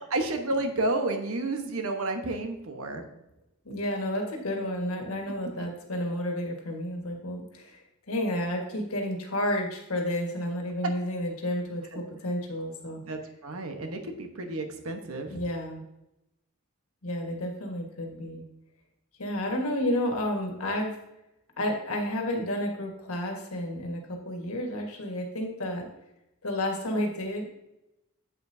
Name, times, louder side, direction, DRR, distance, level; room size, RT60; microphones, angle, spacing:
voice 1, 0.1-3.0 5.6-5.7 11.9-12.0 13.0-15.4, right 2 dB, 85° right, 5 dB, 1.1 m, -31 dB
voice 2, 3.6-13.0 15.3-15.8 17.0-18.4 19.2-21.0 21.6-25.9 26.4-27.4, left 1 dB, 90° left, 2 dB, 1.6 m, -31 dB
9.0 x 7.8 x 2.7 m, 0.88 s
head